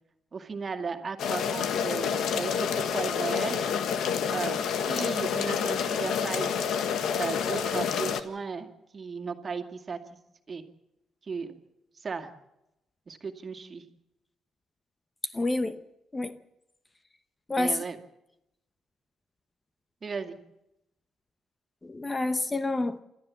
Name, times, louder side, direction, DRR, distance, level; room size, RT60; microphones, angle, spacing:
voice 1, 0.3-3.7 4.3-6.8 7.2-8.7 8.9-10.0 10.5-10.6 11.2-11.6 12.0-12.3 13.1-13.8 17.6-18.0 20.0-20.4, right 5 dB, 40° right, 6 dB, 2.2 m, -35 dB
sound 1, 1.2-8.2, left 7 dB, 75° left, 1.4 m, -28 dB
voice 2, 15.3-15.8 16.1-16.4 17.5-17.8 21.8-23.0, left 2 dB, 20° left, 11 dB, 0.9 m, -28 dB
28.0 x 12.5 x 7.4 m, 0.88 s
cardioid pair, 90°, 0 cm